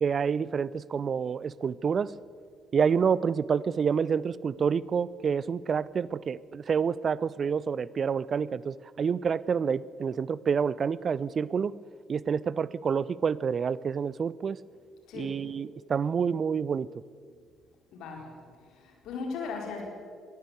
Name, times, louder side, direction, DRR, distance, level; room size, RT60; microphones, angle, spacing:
voice 1, 0.0-2.1 2.7-11.7 12.1-14.6 15.1-16.9, right 6 dB, 45° right, 21 dB, 0.5 m, -28 dB
voice 2, 17.9-18.3 18.7-19.8, left 4 dB, 60° left, 0 dB, 4.8 m, -37 dB
22.0 x 15.5 x 8.2 m, 2.1 s
figure-of-eight pair, 45°, 0 cm